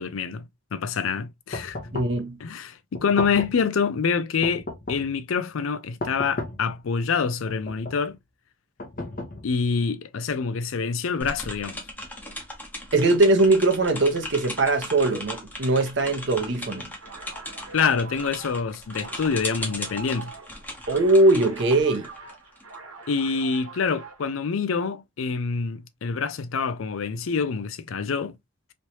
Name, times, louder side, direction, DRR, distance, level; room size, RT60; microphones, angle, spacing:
voice 1, 0.0-1.8 2.4-8.2 9.4-11.8 17.7-20.3 23.1-28.4, left 5 dB, 80° left, 0.5 m, -26 dB
sound 1, 1.5-2.2 2.9-3.7 4.4-5.2 6.0-6.7 7.5-8.1 8.8-9.7, left 2 dB, 40° left, 0.8 m, -34 dB
voice 2, 1.9-2.4 12.9-16.9 20.9-22.1, right 2 dB, 60° right, 0.8 m, -21 dB
sound 2, 11.2-22.7, left 1 dB, 10° left, 0.8 m, -38 dB
sound 3, 17.0-24.4, right 4 dB, 85° right, 1.2 m, -44 dB
3.2 x 3.1 x 2.7 m
head